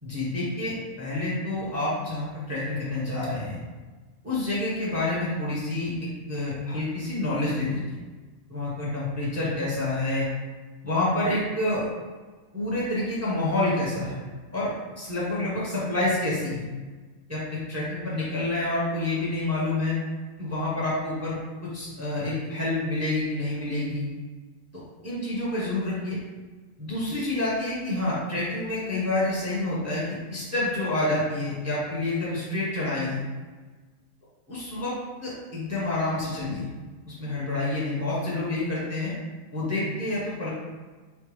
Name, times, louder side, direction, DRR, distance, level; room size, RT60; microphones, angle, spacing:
voice 1, 0.0-3.6 4.2-8.0 8.5-10.2 10.8-11.9 12.5-14.2 14.5-14.7 15.0-16.7 17.3-20.0 20.4-21.4 21.6-24.1 25.0-26.2 26.8-33.2 34.5-34.9 35.2-36.7 37.0-39.1 39.5-40.5, left 2 dB, 15° right, -7 dB, 0.9 m, -28 dB
3.7 x 3.3 x 3.2 m, 1.3 s
omnidirectional pair, 1.4 m